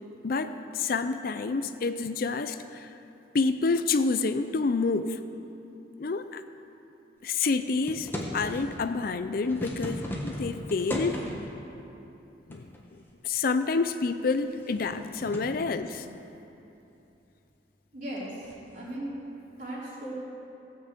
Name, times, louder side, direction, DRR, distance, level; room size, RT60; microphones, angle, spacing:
voice 1, 0.2-2.9 3.3-5.2 6.0-6.4 7.2-11.2 12.5-12.7 13.2-16.1, left 4 dB, 50° left, 10 dB, 0.5 m, -28 dB
sound 1, 7.8-8.8 9.3-11.5 12.5-13.0 13.4-13.5 14.1-15.6 18.4-18.7, equal, 10° left, 1.3 m, -36 dB
voice 2, 17.9-18.3 18.7-19.1 19.6-20.1, right 1 dB, 45° right, -7 dB, 3.7 m, -37 dB
17.0 x 5.8 x 8.1 m, 2.9 s
head